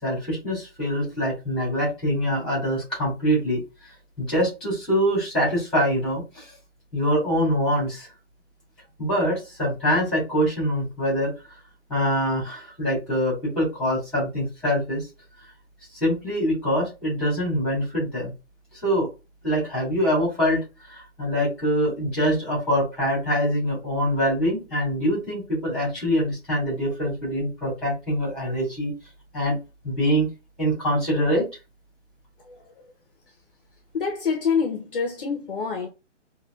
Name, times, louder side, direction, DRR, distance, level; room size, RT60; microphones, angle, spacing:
voice 1, 0.0-3.6 4.2-6.6 6.9-8.1 9.0-11.6 11.9-15.1 15.9-18.3 18.7-19.1 19.4-28.9 29.3-29.6 29.8-30.3 30.6-31.5, equal, ahead, 2.6 m, -24 dB
voice 2, 33.9-35.9, left 6 dB, 45° left, 0.9 m, -26 dB
5.2 x 3.0 x 2.4 m
hypercardioid pair, 170°, 37 cm